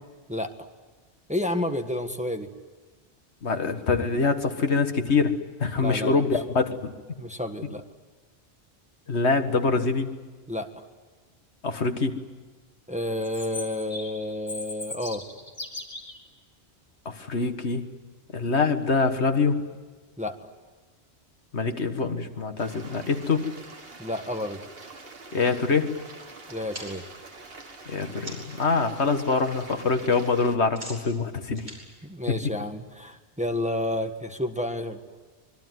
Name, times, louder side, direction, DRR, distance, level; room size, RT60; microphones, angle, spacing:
voice 1, 1.3-2.5 5.8-6.3 7.2-7.8 10.5-10.8 12.9-15.2 20.2-20.3 24.0-24.6 26.5-27.0 32.0-35.0, left 1 dB, 5° right, 6 dB, 1.5 m, -30 dB
voice 2, 3.4-5.3 5.6-6.9 9.1-10.1 11.6-12.2 17.1-17.9 18.3-19.6 21.5-23.5 25.3-25.9 27.9-31.7 32.3-32.4, left 4 dB, 75° left, 7 dB, 1.9 m, -24 dB
Chirp tweet, 13.2-16.2, left 2 dB, 55° left, 3.7 m, -38 dB
Stream, 22.6-30.6, right 3 dB, 60° right, 2.0 m, -45 dB
sound 1, 26.7-28.6 29.0-29.5 29.7-33.0, equal, 40° right, 6.6 m, -45 dB
26.0 x 22.5 x 9.5 m, 1.4 s
omnidirectional pair, 1.1 m